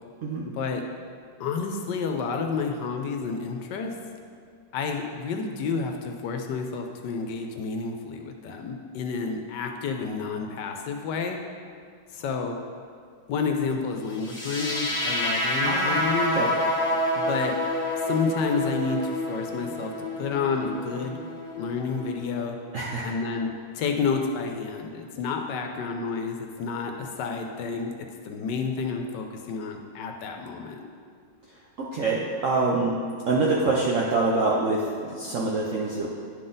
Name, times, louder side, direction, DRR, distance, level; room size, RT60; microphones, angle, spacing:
voice 1, 1.4-3.9 4.7-11.4 12.1-12.6 13.3-16.3 17.1-17.6 18.0-21.2 21.6-22.6 23.0-23.5 23.7-27.9 28.2-30.8, left 5 dB, 75° left, 3 dB, 1.2 m, -30 dB
sound 1, 14.2-22.2, left 1 dB, 5° left, 1.1 m, -28 dB
voice 2, 15.6-16.0 16.4-16.5 22.7-23.1 31.8-33.0 33.3-36.1, right 3 dB, 60° right, -4 dB, 0.9 m, -25 dB
10.5 x 3.9 x 3.8 m, 2.2 s
omnidirectional pair, 2.0 m